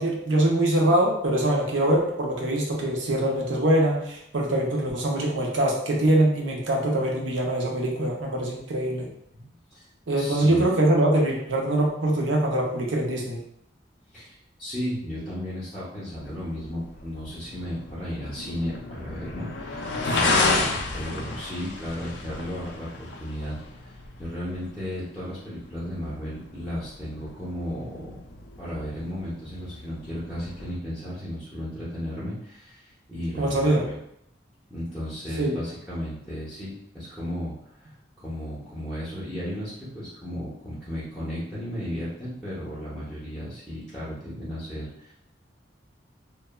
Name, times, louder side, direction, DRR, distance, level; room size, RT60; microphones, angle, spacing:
voice 1, 0.0-9.1 10.1-13.4 20.0-20.2 33.4-33.8 35.4-35.5, right 1 dB, 85° right, -1 dB, 0.6 m, -23 dB
voice 2, 9.3-9.9 10.2-10.7 14.1-28.1 28.6-33.7 34.7-45.1, equal, ahead, -9 dB, 0.6 m, -34 dB
sound 1, 16.1-30.7, left 3 dB, 65° left, 0.3 m, -32 dB
3.1 x 2.0 x 2.2 m, 0.73 s
head